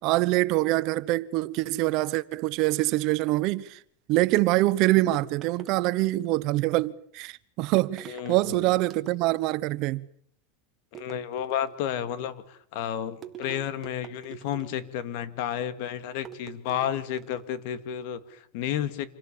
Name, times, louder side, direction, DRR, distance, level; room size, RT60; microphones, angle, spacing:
voice 1, 0.0-3.8 4.1-10.1, right 18 dB, 50° right, 1.0 m, -25 dB
sound 1, 5.1-6.5 7.7-8.4 8.8-9.5 10.9-11.9 13.2-15.0 16.2-17.5, right 10 dB, 25° right, 2.0 m, -46 dB
voice 2, 8.1-8.7 10.9-19.1, left 10 dB, 65° left, 2.2 m, -32 dB
27.0 x 17.0 x 8.7 m
supercardioid pair, 140°, 0 cm